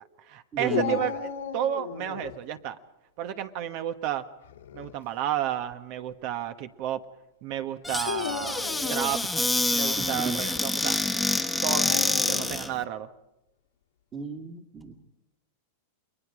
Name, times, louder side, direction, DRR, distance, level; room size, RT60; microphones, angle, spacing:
voice 1, 0.0-2.8 3.2-4.2 4.7-7.0 7.4-9.3 9.7-11.0 11.6-13.1, right 11 dB, 55° right, 10 dB, 1.3 m, -32 dB
voice 2, 0.5-1.0 10.0-10.4 14.1-15.0, right 5 dB, 30° right, -1 dB, 2.3 m, -35 dB
Dog, 0.7-2.4 4.4-4.9 5.7-5.8 8.0-9.2 11.7-12.7, left 8 dB, 90° left, 2.5 m, -34 dB
Squeak / Cupboard open or close, 7.8-12.7, left 2 dB, 5° left, 1.4 m, -27 dB
30.0 x 22.5 x 5.1 m, 0.91 s
hypercardioid pair, 120°, 0 cm